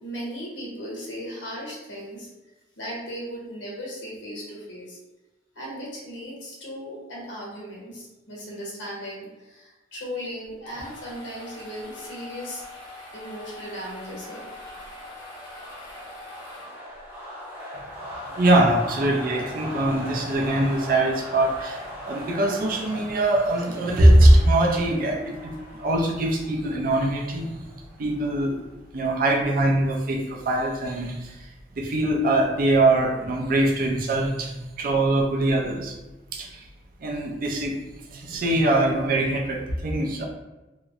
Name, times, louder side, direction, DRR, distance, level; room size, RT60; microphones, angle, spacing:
voice 1, 0.0-2.3 2.8-5.0 5.5-12.6 13.1-14.5, equal, 85° left, -4 dB, 0.8 m, -37 dB
sound 1, 10.5-17.1, left 2 dB, 25° left, 0.5 m, -43 dB
sound 2, 12.0-28.6, equal, 5° right, 0.7 m, -40 dB
voice 2, 18.3-27.6 28.0-28.6 28.9-31.5 31.8-35.9 36.3-36.7 37.0-37.8 38.1-40.2, right 1 dB, 50° right, 0 dB, 0.4 m, -22 dB
2.8 x 2.0 x 2.4 m, 1.1 s
head